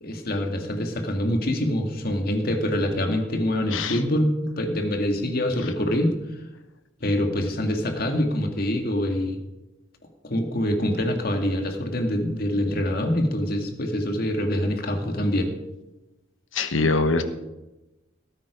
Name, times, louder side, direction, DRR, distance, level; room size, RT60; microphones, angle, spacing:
voice 1, 0.0-6.2 7.0-9.4 10.2-15.5, left 1 dB, 50° left, 4 dB, 2.0 m, -25 dB
voice 2, 16.5-17.2, left 3 dB, 85° left, 9 dB, 1.1 m, -23 dB
18.5 x 9.3 x 5.1 m, 1.0 s
head